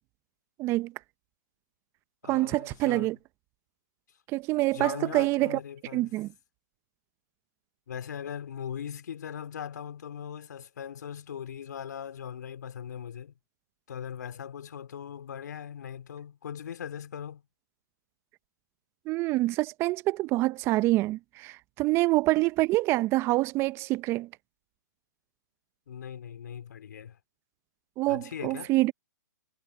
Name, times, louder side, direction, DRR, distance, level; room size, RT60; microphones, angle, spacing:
voice 1, 0.6-0.9 2.3-3.2 4.3-5.6 5.9-6.3 19.1-24.3 28.0-28.9, right 19 dB, 25° right, 0.7 m, -26 dB
voice 2, 2.2-3.1 4.7-6.1 7.9-13.3 13.9-17.4 25.9-27.2 28.1-28.7, left 8 dB, 65° left, 3.0 m, -40 dB
hypercardioid pair, 135°, 10 cm